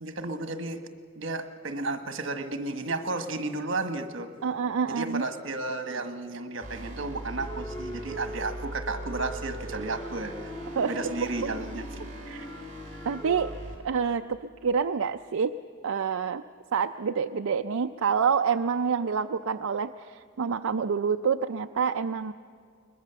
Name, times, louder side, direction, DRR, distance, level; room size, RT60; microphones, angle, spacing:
voice 1, 0.0-0.9 1.2-4.3 4.9-10.5 10.8-12.0, right 2 dB, 65° right, 8 dB, 1.4 m, -33 dB
voice 2, 4.4-5.2 10.8-11.3 12.3-12.5 13.0-13.5 13.8-15.5 15.8-16.4 16.7-22.3, right 6 dB, 85° right, 7 dB, 0.5 m, -27 dB
sound 1, 6.6-13.8, right 1 dB, 35° right, 4.2 m, -41 dB
sound 2, 7.4-13.6, right 1 dB, 15° left, 1.7 m, -41 dB
21.5 x 21.0 x 7.0 m, 2.2 s
head